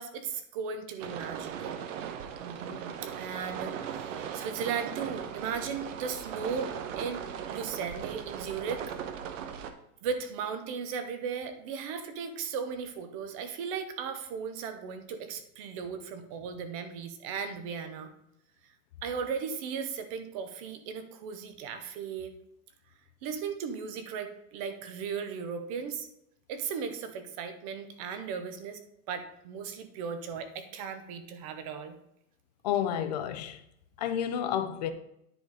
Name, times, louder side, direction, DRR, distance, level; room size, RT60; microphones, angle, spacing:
voice 1, 0.0-1.9 2.4-8.8 10.0-18.1 19.0-22.3 23.2-26.1 26.5-28.8 29.1-31.9, right 6 dB, 25° right, 0.5 m, -36 dB
sound 1, 1.0-9.7, right 8 dB, 65° right, 1.0 m, -38 dB
voice 2, 32.6-33.6 34.0-34.9, left 9 dB, 35° left, 0.4 m, -30 dB
9.9 x 4.0 x 4.7 m
supercardioid pair, 180°, 41 cm